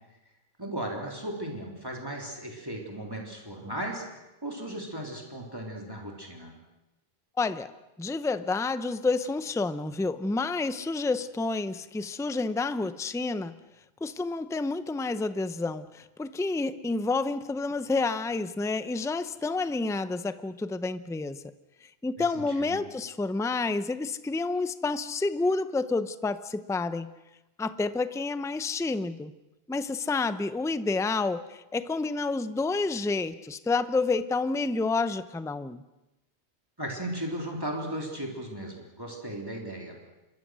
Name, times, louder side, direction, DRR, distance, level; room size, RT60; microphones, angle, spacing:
voice 1, 0.6-4.0 4.4-6.5 22.5-22.8 36.8-40.0, right 1 dB, 20° right, 0 dB, 3.4 m, -36 dB
voice 2, 7.4-7.7 8.0-13.5 14.0-21.4 21.8-27.1 27.6-29.3 29.7-35.8, left 3 dB, 5° left, 13 dB, 0.5 m, -29 dB
26.5 x 22.0 x 6.3 m, 0.99 s
omnidirectional pair, 1.1 m